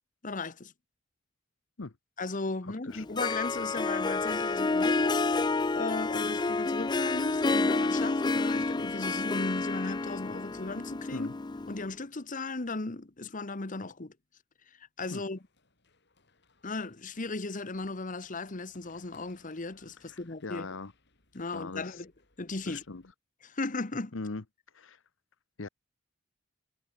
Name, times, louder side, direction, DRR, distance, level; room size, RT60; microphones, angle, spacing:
voice 1, 0.2-0.7 2.2-5.2 5.7-11.3 11.7-14.1 14.8-15.4 16.6-20.7 21.3-22.1 22.4-22.8 23.4-24.1, left 3 dB, 40° left, 1.2 m, -36 dB
voice 2, 2.6-3.0 11.1-11.3 15.1-15.2 20.1-20.9 21.5-22.0 22.7-23.0 24.1-24.4 24.7-25.0 25.6-25.7, left 3 dB, 75° left, 1.0 m, -40 dB
Harp, 2.9-11.9, left 3 dB, 20° left, 0.4 m, -29 dB
Run, 15.4-23.1, left 3 dB, 60° left, 6.6 m, -66 dB
head